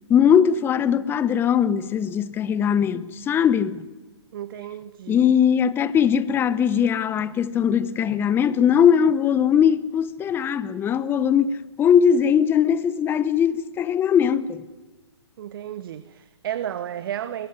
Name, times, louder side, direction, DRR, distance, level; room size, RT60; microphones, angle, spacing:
voice 1, 0.1-3.8 5.1-14.6, left 8 dB, 15° left, 0.8 m, -20 dB
voice 2, 4.3-5.3 15.4-17.5, right 11 dB, 50° right, 1.1 m, -33 dB
22.5 x 17.0 x 9.6 m
figure-of-eight pair, 125°, 15 cm